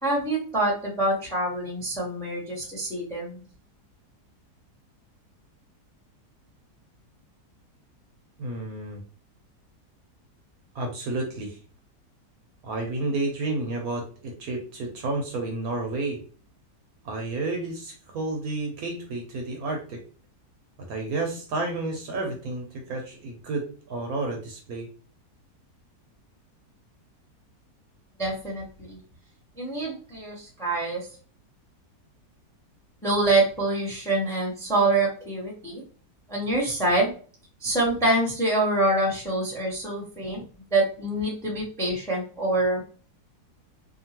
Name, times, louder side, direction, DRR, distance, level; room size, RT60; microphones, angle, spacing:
voice 1, 0.0-3.4 28.2-29.0 29.6-31.1 33.0-35.8 36.3-37.1 37.6-40.4 40.7-42.8, right 2 dB, ahead, -4 dB, 0.8 m, -25 dB
voice 2, 8.4-9.0 10.7-11.6 12.6-16.2 17.0-20.0 20.9-24.9, right 2 dB, 70° right, 2 dB, 1.0 m, -31 dB
2.8 x 2.4 x 2.8 m, 0.40 s
omnidirectional pair, 1.7 m